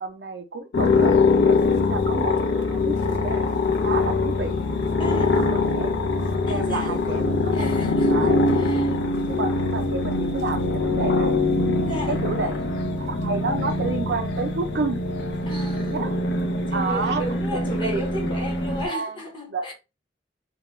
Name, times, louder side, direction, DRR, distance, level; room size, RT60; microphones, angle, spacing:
voice 1, 0.0-3.5 3.8-6.0 6.5-11.4 12.1-12.6 13.0-15.0 15.9-16.2 16.7-17.3 17.5-18.3 18.9-19.2 19.5-19.7, right 3 dB, 70° right, 0.4 m, -31 dB
sound 1, 0.7-18.9, left 3 dB, 75° left, 0.5 m, -23 dB
voice 2, 1.5-2.0 5.0-5.4 6.5-7.0 7.5-8.9 11.8-12.5 15.5-16.0 16.7-19.7, equal, 30° left, 0.8 m, -35 dB
2.3 x 2.1 x 3.0 m
head